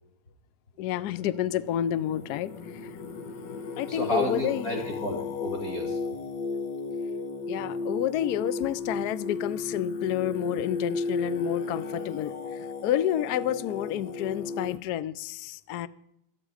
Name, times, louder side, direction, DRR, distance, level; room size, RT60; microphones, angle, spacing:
voice 1, 0.8-2.5 2.8-2.9 3.8-4.7 7.5-15.9, left 11 dB, 75° left, 16 dB, 0.9 m, -29 dB
Singing, 0.9-14.8, left 4 dB, 60° left, 1.8 m, -34 dB
voice 2, 3.9-6.0, equal, 40° left, 0 dB, 2.8 m, -31 dB
17.0 x 12.0 x 4.9 m, 0.77 s
omnidirectional pair, 2.4 m